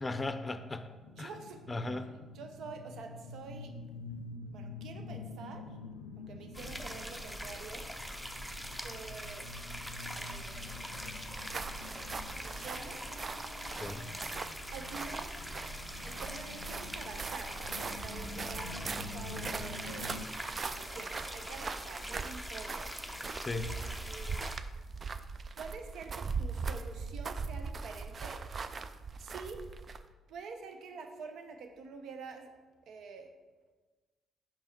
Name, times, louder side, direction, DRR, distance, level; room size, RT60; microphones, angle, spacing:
voice 1, 0.0-0.9 1.2-1.3 1.7-2.2 13.8-14.1 23.4-23.7, left 2 dB, 25° left, 9 dB, 0.6 m, -37 dB
sound 1, 0.9-20.3, left 3 dB, 85° left, 0.4 m, -48 dB
voice 2, 1.2-1.6 2.3-3.7 4.5-5.8 6.2-7.9 8.8-9.5 10.2-10.9 12.4-13.0 14.7-15.3 16.0-20.1 20.6-22.9 23.8-24.4 25.6-28.4 29.2-29.6 30.3-32.5 32.9-33.3, right 4 dB, 65° right, 6 dB, 0.7 m, -47 dB
sound 2, 6.5-24.6, equal, 5° right, 0.7 m, -43 dB
sound 3, 11.2-30.1, right 4 dB, 40° right, 0.3 m, -41 dB
5.5 x 5.4 x 4.4 m, 1.3 s
hypercardioid pair, 45°, 0 cm